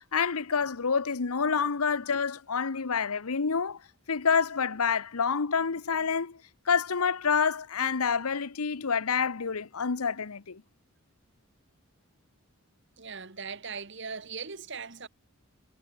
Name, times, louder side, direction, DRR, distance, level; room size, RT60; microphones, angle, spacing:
voice 1, 0.1-3.8 4.1-6.4 6.7-10.6, left 6 dB, 85° left, 0.9 m, -28 dB
voice 2, 13.0-15.1, right 5 dB, 55° right, 1.8 m, -39 dB
head